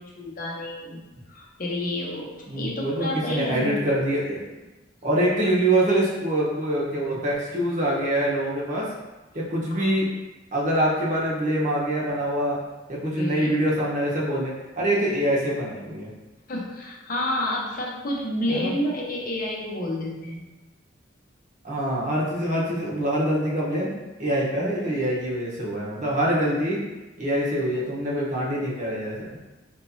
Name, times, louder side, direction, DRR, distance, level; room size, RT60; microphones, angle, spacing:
voice 1, 0.0-2.3 2.6-3.7 9.7-9.9 13.2-13.5 16.5-20.5 24.6-25.0, left 1 dB, 50° left, -3 dB, 0.8 m, -30 dB
voice 2, 2.5-4.4 5.0-8.9 9.3-10.1 10.5-12.6 12.9-16.1 18.5-18.8 21.6-23.9 24.2-26.8 27.2-29.4, right 1 dB, 45° right, -5 dB, 0.9 m, -25 dB
4.3 x 3.1 x 2.7 m, 1.1 s
head